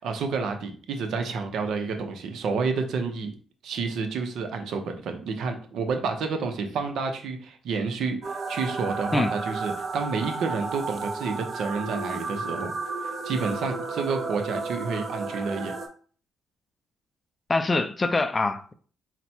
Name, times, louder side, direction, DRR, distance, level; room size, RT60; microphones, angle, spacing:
voice 1, 0.0-3.3 3.6-8.2 8.5-12.7 13.0-15.7, right 4 dB, 75° right, 0.7 m, -29 dB
sound 1, 8.2-15.9, right 3 dB, 45° right, 0.8 m, -33 dB
voice 2, 17.5-18.7, left 3 dB, 25° left, 0.4 m, -24 dB
4.1 x 2.2 x 4.3 m
cardioid pair, 90°, 0 cm